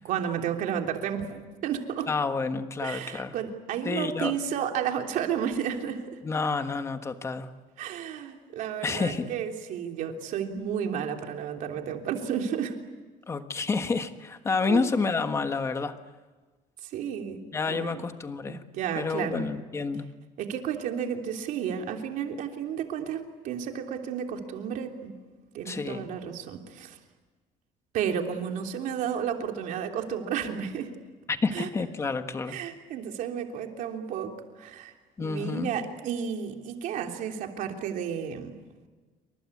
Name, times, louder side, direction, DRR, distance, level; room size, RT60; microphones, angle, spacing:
voice 1, 0.0-2.1 2.8-6.2 7.8-12.8 14.6-14.8 16.8-17.4 17.7-18.0 18.5-19.5 20.4-25.1 25.5-27.0 27.9-30.9 31.5-31.7 32.5-34.9 35.2-38.6, right 8 dB, 65° right, 4 dB, 3.2 m, -32 dB
voice 2, 2.1-3.3 3.8-4.3 6.2-7.5 8.8-9.3 13.3-15.9 17.5-18.6 18.9-20.0 25.7-26.1 31.3-32.5 35.2-35.7, left 4 dB, 20° left, 8 dB, 1.3 m, -29 dB
28.0 x 25.0 x 8.5 m, 1.3 s
cardioid pair, 180°, 15 cm